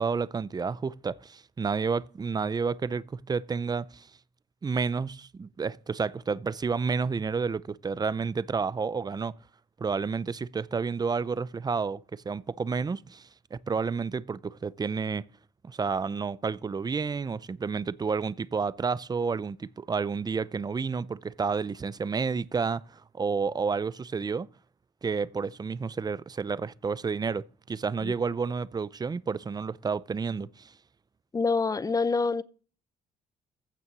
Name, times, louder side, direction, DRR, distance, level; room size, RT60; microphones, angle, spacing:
voice 1, 0.0-4.1 4.6-9.3 9.8-15.2 15.6-24.5 25.0-30.7, right 5 dB, 25° right, 0.5 m, -30 dB
voice 2, 31.3-32.4, left 4 dB, 20° left, 0.7 m, -26 dB
15.0 x 7.0 x 6.0 m
cardioid pair, 110°, 17 cm